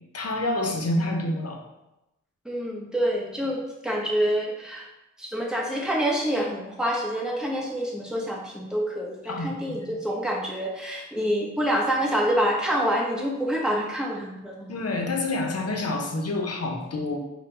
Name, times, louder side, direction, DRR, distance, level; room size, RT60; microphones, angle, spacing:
voice 1, 0.1-1.6 9.2-9.5 14.7-17.2, left 2 dB, 55° left, 2 dB, 0.7 m, -27 dB
voice 2, 2.4-4.9 5.2-14.7, equal, ahead, -3 dB, 1.0 m, -27 dB
4.3 x 2.2 x 3.8 m, 0.94 s
cardioid pair, 45°, 30 cm